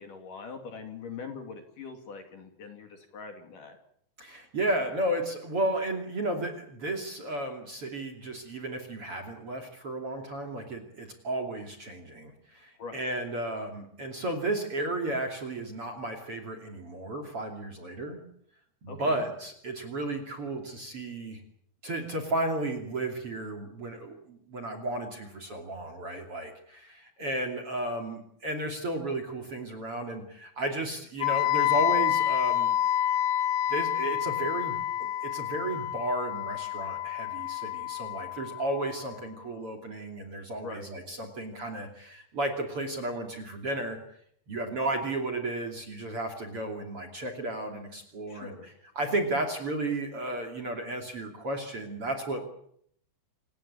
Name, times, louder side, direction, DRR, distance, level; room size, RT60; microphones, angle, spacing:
voice 1, 0.0-3.8 12.8-13.0 18.9-19.3 40.6-40.9 48.3-48.7, left 5 dB, 50° left, 5 dB, 3.8 m, -42 dB
voice 2, 4.2-18.2 18.8-21.4 21.8-32.7 33.7-34.7 35.0-44.0 44.5-52.4, right 1 dB, 35° right, 7 dB, 3.1 m, -33 dB
Wind instrument woodwind instrument, 31.2-39.1, left 12 dB, 85° left, 3.5 m, -28 dB
28.5 x 16.5 x 8.6 m, 0.68 s
omnidirectional pair, 5.2 m